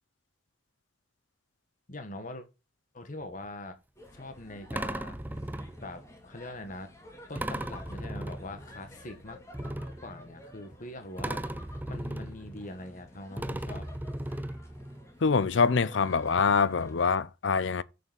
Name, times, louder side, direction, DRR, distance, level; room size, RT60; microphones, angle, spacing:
voice 1, 1.9-2.5 2.9-3.8 4.1-5.2 5.8-6.9 7.3-9.4 10.0-11.4 11.9-13.9, left 1 dB, 45° left, 1.6 m, -42 dB
sound 1, 3.2-3.5 4.7-6.1 7.4-8.9 9.5-10.8 11.2-13.1 13.4-15.1 16.0-16.1 16.4-16.5, right 1 dB, 10° right, 0.5 m, -37 dB
sound 2, 3.9-17.0, left 1 dB, 15° left, 2.3 m, -52 dB
voice 2, 15.2-17.8, left 5 dB, 70° left, 0.6 m, -25 dB
7.0 x 6.7 x 5.2 m
head